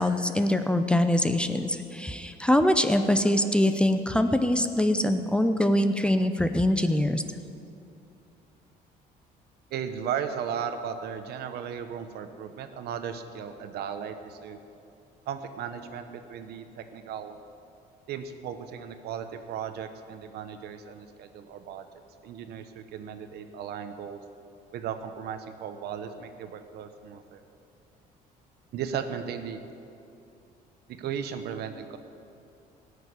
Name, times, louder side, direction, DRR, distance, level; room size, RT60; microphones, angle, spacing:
voice 1, 0.0-7.2, left 1 dB, 5° left, 8 dB, 0.6 m, -23 dB
voice 2, 9.7-14.6 15.3-17.4 18.1-21.8 22.2-24.2 24.7-27.4 28.7-29.6 30.9-32.0, right 8 dB, 70° right, 8 dB, 1.1 m, -36 dB
16.0 x 6.7 x 9.7 m, 2.7 s
cardioid pair, 110°, 17 cm